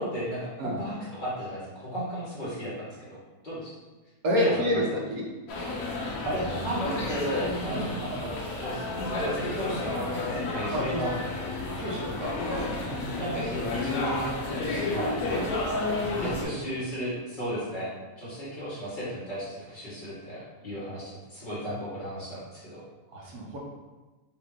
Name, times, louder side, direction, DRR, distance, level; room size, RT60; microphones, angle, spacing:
voice 1, 0.0-3.2 3.4-3.7 4.3-4.8 6.1-8.3 8.6-8.8 9.1-11.1 13.1-15.2 16.1-22.9, equal, 35° left, -9 dB, 1.5 m, -34 dB
voice 2, 4.2-5.2 7.7-7.9 10.7-11.0 11.8-13.6 15.3-15.5 16.2-16.5 23.1-23.6, equal, 75° right, -3 dB, 1.4 m, -30 dB
sound 1, 5.5-16.4, left 2 dB, 70° left, 1.2 m, -31 dB
4.5 x 2.8 x 3.6 m, 1.2 s
omnidirectional pair, 1.6 m